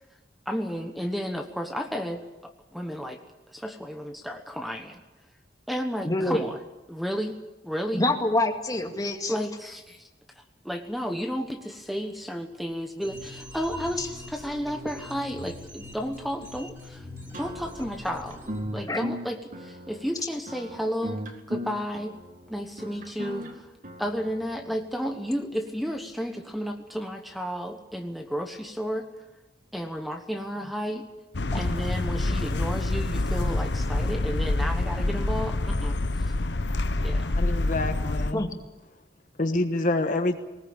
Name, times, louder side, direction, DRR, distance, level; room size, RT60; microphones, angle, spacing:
voice 1, 0.5-3.2 3.5-5.0 5.7-6.6 6.9-7.4 7.6-8.0 9.3-10.1 10.4-17.1 17.4-18.4 18.7-21.2 21.5-22.1 22.5-23.7 24.0-29.1 29.7-31.0 31.5-36.3 37.0-37.3, equal, ahead, 4 dB, 1.2 m, -32 dB
voice 2, 6.0-6.4 7.9-9.3 14.0-14.1 18.9-19.0 38.3-38.5, left 2 dB, 20° left, 4 dB, 2.2 m, -26 dB
sound 1, 13.0-18.7, left 1 dB, 15° right, 4.9 m, -43 dB
sound 2, 17.3-24.7, equal, 50° right, 2.2 m, -38 dB
sound 3, 31.3-38.3, left 2 dB, 75° left, 1.0 m, -26 dB
voice 3, 37.4-38.4 39.4-40.4, left 2 dB, 45° left, 6 dB, 1.3 m, -26 dB
20.0 x 19.0 x 8.8 m, 1.1 s
head